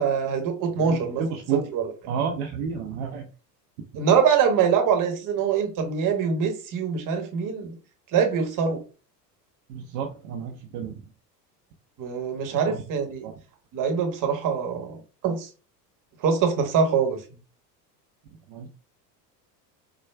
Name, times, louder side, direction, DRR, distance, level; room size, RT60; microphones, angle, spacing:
voice 1, 0.0-1.2 1.5-1.9 4.0-7.7 8.1-8.8 12.0-13.3 13.7-14.9 15.2-15.5 16.2-17.2, right 6 dB, 40° right, 1.1 m, -23 dB
voice 2, 0.8-1.7 2.1-3.3 9.7-11.0 12.4-12.8 13.2-13.3 18.5-18.7, right 6 dB, 60° right, 0.7 m, -31 dB
4.5 x 2.2 x 2.2 m
hypercardioid pair, 80°, 50 cm